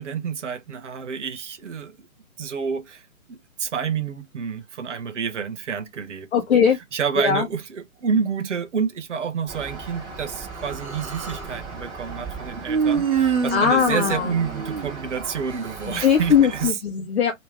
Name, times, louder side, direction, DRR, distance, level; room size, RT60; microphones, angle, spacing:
voice 1, 0.0-2.0 2.4-3.0 3.3-6.3 6.9-16.7, right 6 dB, 55° right, 1.1 m, -29 dB
voice 2, 6.3-6.8 7.2-7.5 13.5-14.3 15.9-17.3, left 7 dB, 50° left, 1.1 m, -20 dB
sound 1, 9.5-16.7, right 4 dB, 10° right, 1.6 m, -38 dB
Human voice, 10.6-11.5 12.7-15.4, right 6 dB, 80° right, 1.6 m, -26 dB
3.3 x 3.1 x 3.1 m
figure-of-eight pair, 135°, 42 cm